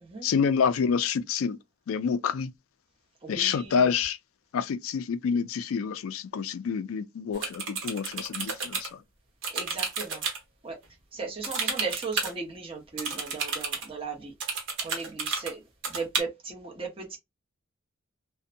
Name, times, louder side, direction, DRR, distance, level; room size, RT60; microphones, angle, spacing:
voice 1, 0.2-1.6 1.9-2.5 3.3-4.2 4.5-9.0, left 6 dB, 75° left, 0.4 m, -27 dB
voice 2, 3.2-3.9 9.5-10.2 10.6-10.8 11.1-14.3 14.8-17.2, right 4 dB, 25° right, 0.8 m, -37 dB
sound 1, 7.3-8.9 9.4-10.4 11.4-12.3 13.0-13.8 14.4-15.5 15.8-16.2, right 4 dB, 60° right, 1.0 m, -31 dB
2.6 x 2.1 x 2.5 m
head